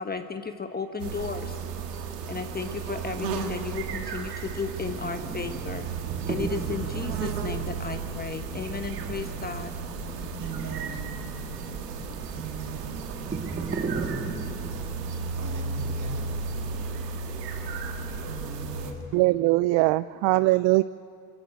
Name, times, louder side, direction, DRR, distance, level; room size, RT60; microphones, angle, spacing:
voice 1, 0.0-1.6 2.3-5.8 6.3-9.7, left 5 dB, 20° left, 7 dB, 1.0 m, -34 dB
sound 1, 1.0-18.9, right 5 dB, 90° right, 2.0 m, -34 dB
sound 2, 4.9-16.9, right 4 dB, 20° right, 1.6 m, -37 dB
voice 2, 10.4-13.0 15.4-16.3 16.6-16.9 17.9-19.1, right 6 dB, 40° right, 3 dB, 4.7 m, -42 dB
voice 3, 19.1-20.8, right 20 dB, 60° right, 17 dB, 0.5 m, -21 dB
22.0 x 14.0 x 8.8 m, 2.4 s
supercardioid pair, 90°, 47 cm